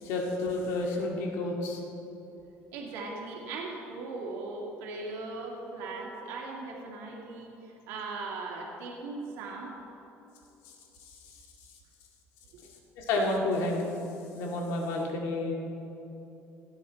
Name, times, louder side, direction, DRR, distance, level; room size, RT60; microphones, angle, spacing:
voice 1, 0.0-1.8 11.0-11.1 13.0-13.9 14.4-15.5, left 2 dB, 80° left, 0 dB, 2.1 m, -30 dB
voice 2, 2.7-7.5 7.9-9.7, right 3 dB, 80° right, -1 dB, 2.1 m, -38 dB
17.0 x 10.0 x 4.1 m, 2.9 s
cardioid pair, 180°, 5 cm